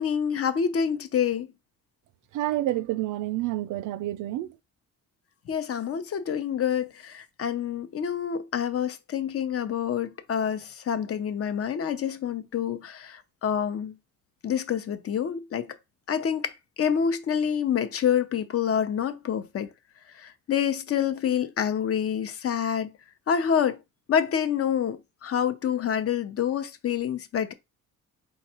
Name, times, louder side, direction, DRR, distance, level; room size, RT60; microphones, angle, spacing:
voice 1, 0.0-1.5 5.5-13.9 14.4-15.7 16.1-16.5 16.8-19.7 20.2-22.9 23.3-23.8 24.1-27.5, left 8 dB, 50° left, 0.7 m, -27 dB
voice 2, 2.3-4.5, right 15 dB, 80° right, 0.5 m, -28 dB
4.5 x 2.4 x 4.2 m
cardioid pair, 90°, 30 cm